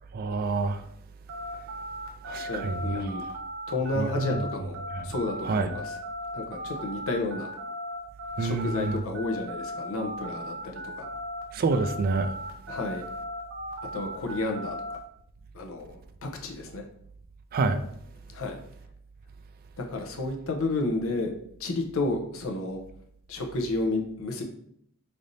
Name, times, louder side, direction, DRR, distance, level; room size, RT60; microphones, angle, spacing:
voice 1, 0.1-0.8 2.3-3.1 4.0-4.4 4.9-5.1 5.4-5.7 8.4-9.0 11.5-12.3 17.5-17.8, right 3 dB, 45° right, 0.3 m, -27 dB
sound 1, 1.3-11.4 11.7-15.0, equal, 65° right, 0.7 m, -37 dB
voice 2, 2.5-3.2 3.7-4.8 5.0-5.9 6.3-7.5 8.4-11.1 12.7-13.0 13.9-14.8 15.5-16.8 18.3-18.6 19.8-21.3 21.6-22.8 23.3-24.4, left 2 dB, 70° left, 0.7 m, -31 dB
3.3 x 2.6 x 4.0 m
head